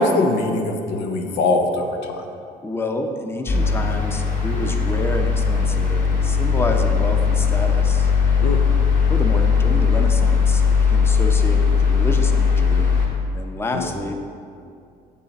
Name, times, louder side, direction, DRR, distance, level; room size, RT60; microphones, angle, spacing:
voice 1, 0.0-2.2 8.4-8.6 13.7-13.9, left 2 dB, 90° left, 4 dB, 0.9 m, -21 dB
voice 2, 2.6-8.1 9.1-10.6 10.9-12.9 13.3-14.1, left 2 dB, 15° left, 4 dB, 0.7 m, -28 dB
sound 1, 3.5-13.1, left 5 dB, 50° left, 1.7 m, -18 dB
8.4 x 7.0 x 4.1 m, 2.4 s
cardioid pair, 110°, 17 cm